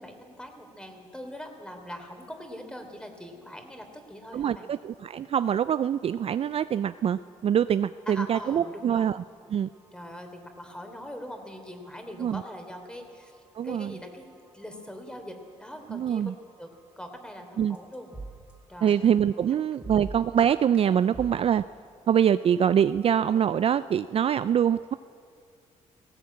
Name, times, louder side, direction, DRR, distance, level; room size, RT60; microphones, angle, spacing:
voice 1, 0.0-4.7 8.1-9.1 9.9-14.3 14.5-16.3 16.6-16.7 17.0-18.1 18.7-19.1 19.8-20.0, equal, 5° left, 5 dB, 3.3 m, -42 dB
voice 2, 4.3-9.2 9.5-9.7 12.2-12.4 13.6-13.9 15.9-16.3 17.6-17.8 18.8-21.6 22.1-24.9, right 9 dB, 50° right, 14 dB, 0.4 m, -24 dB
sound 1, 5.7-21.5, right 3 dB, 10° right, 3.4 m, -50 dB
18.0 x 17.0 x 8.6 m, 2.3 s
cardioid pair, 95°, 13 cm